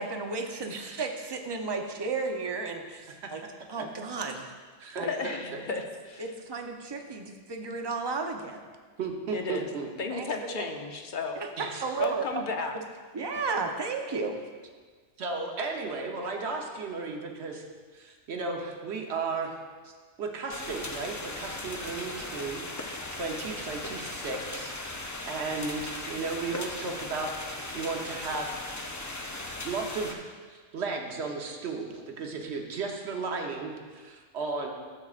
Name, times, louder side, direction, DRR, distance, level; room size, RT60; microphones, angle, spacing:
voice 1, 0.0-3.4 3.7-4.5 5.0-5.1 6.2-8.6 10.1-10.7 11.3-12.4 13.1-14.4, right 4 dB, 30° right, 3 dB, 0.5 m, -33 dB
voice 2, 0.7-1.0 4.8-5.1 5.5-5.6 9.0-9.9 11.6-11.8 15.2-17.6 17.9-19.6 19.8-19.9 20.2-25.0 25.2-28.9 29.6-34.7, right 4 dB, 65° right, 2 dB, 1.2 m, -35 dB
voice 3, 5.0-6.3 9.3-9.7 10.0-11.4 12.0-12.8, left 4 dB, 50° left, 4 dB, 0.7 m, -34 dB
sound 1, 20.5-30.1, left 2 dB, 25° left, 0.4 m, -38 dB
13.0 x 7.2 x 2.5 m, 1.5 s
omnidirectional pair, 1.2 m